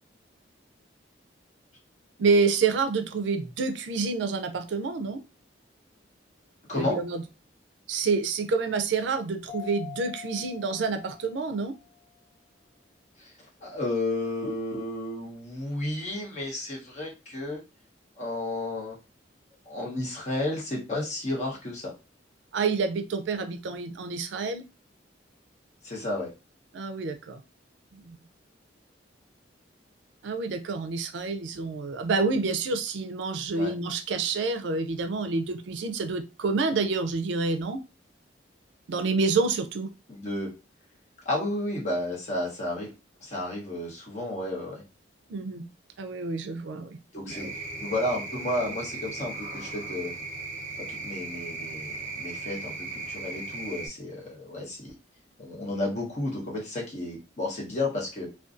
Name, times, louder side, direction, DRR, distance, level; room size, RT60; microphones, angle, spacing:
voice 1, 2.2-5.2 6.7-7.2 7.9-11.7 22.5-24.6 26.7-27.4 27.9-28.1 30.2-37.8 38.9-39.9 45.3-45.6 46.0-47.0 47.3-47.5, right 4 dB, 70° right, 0.4 m, -28 dB
Mallet percussion, 9.5-12.0, left 12 dB, 70° left, 0.5 m, -44 dB
voice 2, 13.6-17.6 18.2-19.0 19.7-21.9 25.8-26.3 33.5-33.7 40.1-40.5 41.2-42.9 43.2-44.8 47.1-47.5 47.8-50.1 50.9-54.9 55.4-58.3, left 1 dB, 40° left, 0.9 m, -32 dB
sound 1, 47.3-53.9, right 3 dB, 40° right, 0.7 m, -37 dB
2.5 x 2.2 x 2.4 m
head